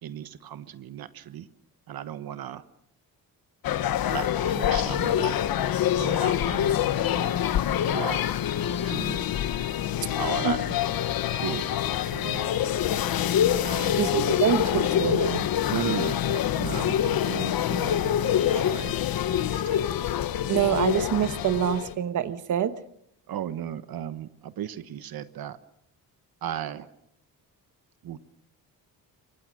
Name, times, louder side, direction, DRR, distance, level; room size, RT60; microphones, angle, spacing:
voice 1, 0.0-1.5 1.9-2.6 4.1-5.3 6.0-7.3 7.8-8.4 8.8-9.2 10.2-10.6 11.4-12.5 13.6-14.1 15.7-18.9 19.3-19.9 23.3-25.6 26.4-26.9 28.0-28.2, right 10 dB, 70° right, 12 dB, 1.2 m, -36 dB
sound 1, 3.6-22.0, left 10 dB, 70° left, 1.2 m, -26 dB
voice 2, 14.0-15.4 20.5-22.7, right 9 dB, 50° right, 12 dB, 1.2 m, -25 dB
28.5 x 25.0 x 6.4 m, 0.74 s
wide cardioid pair, 165°, 37 cm